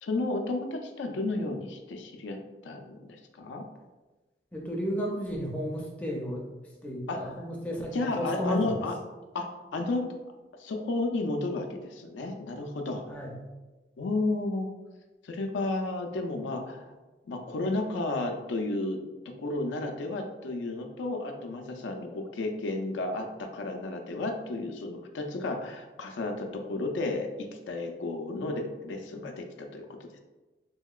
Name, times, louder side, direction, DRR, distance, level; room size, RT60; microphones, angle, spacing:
voice 1, 0.0-2.4 2.6-3.6 7.1-7.4 7.9-8.9 9.3-10.1 10.6-13.1 14.0-14.7 15.2-17.0 17.3-30.2, left 2 dB, 85° left, 3 dB, 0.4 m, -32 dB
voice 2, 4.5-6.4 6.8-8.8 13.1-13.4, equal, 10° left, -3 dB, 0.4 m, -33 dB
2.8 x 2.8 x 2.3 m, 1.2 s
head